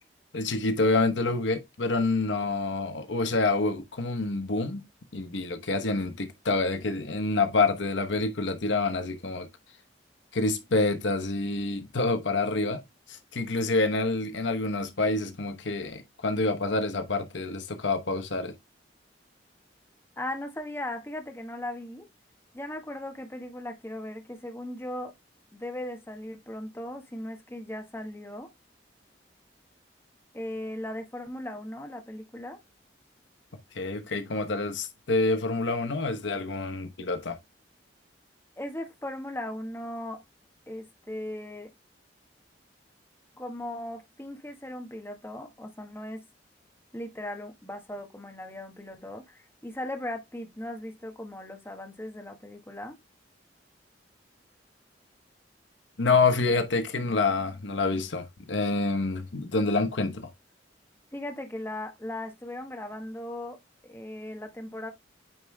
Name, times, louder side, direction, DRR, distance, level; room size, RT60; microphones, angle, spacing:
voice 1, 0.3-4.8 5.1-9.5 10.3-18.5 33.7-37.4 56.0-60.3, left 3 dB, 85° left, 1.0 m, -27 dB
voice 2, 20.2-22.1 22.5-25.1 25.5-28.5 30.3-32.6 38.6-40.2 40.7-41.7 43.4-46.2 46.9-53.0 61.1-64.9, left 1 dB, 15° left, 1.2 m, -38 dB
9.0 x 3.4 x 3.2 m
head